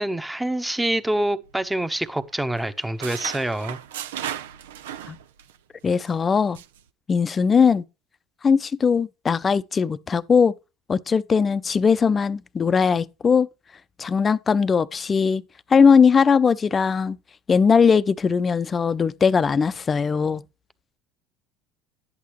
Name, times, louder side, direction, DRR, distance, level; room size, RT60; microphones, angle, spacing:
voice 1, 0.0-3.8, right 1 dB, 5° right, 1.0 m, -26 dB
sound 1, 1.4-2.3 2.6-5.6 5.9-6.1 6.5-6.8, right 10 dB, 85° right, 0.5 m, -36 dB
voice 2, 5.8-6.6 7.1-7.8 8.4-10.5 10.9-13.5 14.0-15.4 15.7-17.2 17.5-20.4, left 6 dB, 30° left, 0.6 m, -19 dB
11.5 x 8.4 x 3.1 m
hypercardioid pair, 80°, 0 cm